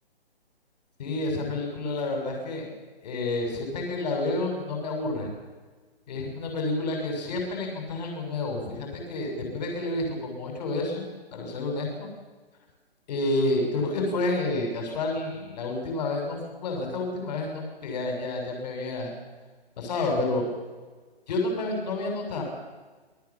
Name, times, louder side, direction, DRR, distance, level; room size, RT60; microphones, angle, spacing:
voice 1, 1.0-2.7 3.0-5.3 6.1-12.1 13.1-19.1 19.8-20.4 21.3-22.4, left 2 dB, 40° left, 2 dB, 6.8 m, -29 dB
28.0 x 20.0 x 7.3 m, 1.4 s
hypercardioid pair, 155°, 31 cm